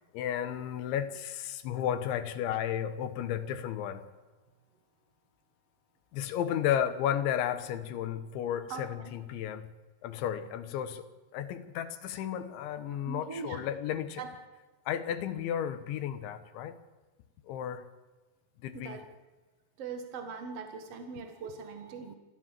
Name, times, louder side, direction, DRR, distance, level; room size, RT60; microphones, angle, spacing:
voice 1, 0.1-4.0 6.1-9.7 10.0-11.0 11.3-14.2 14.9-16.8 17.5-17.9 18.6-19.1, left 10 dB, 85° left, 10 dB, 3.6 m, -33 dB
voice 2, 8.7-9.1 13.1-13.6 14.2-14.3 18.7-19.0 19.8-22.2, right 5 dB, 60° right, 5 dB, 1.7 m, -41 dB
28.0 x 12.5 x 7.5 m, 1.2 s
omnidirectional pair, 5.2 m